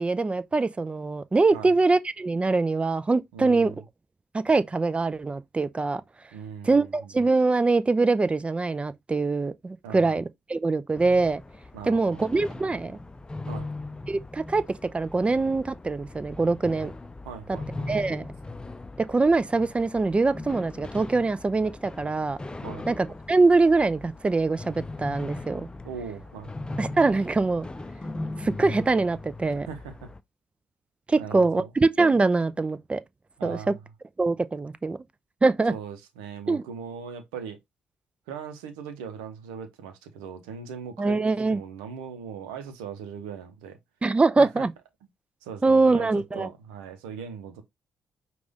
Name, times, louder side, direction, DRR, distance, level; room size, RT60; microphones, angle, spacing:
voice 1, 0.0-3.7 4.4-6.0 6.6-11.4 11.8-13.0 14.1-14.6 14.9-16.9 17.9-18.3 19.1-22.4 22.9-25.7 26.8-27.7 28.4-29.7 31.1-33.0 33.4-33.6 34.2-35.0 35.4-35.7 36.5-36.6 41.0-41.6 44.0-44.7 45.6-46.5, right 3 dB, 25° right, 0.5 m, -23 dB
voice 2, 3.3-3.8 6.3-7.1 9.8-10.2 11.7-12.2 13.5-13.7 17.2-17.9 22.6-22.8 25.8-26.5 29.5-30.1 31.2-31.7 33.4-33.8 35.7-37.6 38.3-41.2 41.5-43.8 44.4-44.6 45.4-47.6, right 7 dB, 85° right, 0.8 m, -39 dB
sound 1, 10.9-30.2, left 2 dB, 20° left, 0.6 m, -39 dB
5.0 x 2.5 x 3.6 m
hypercardioid pair, 45°, 5 cm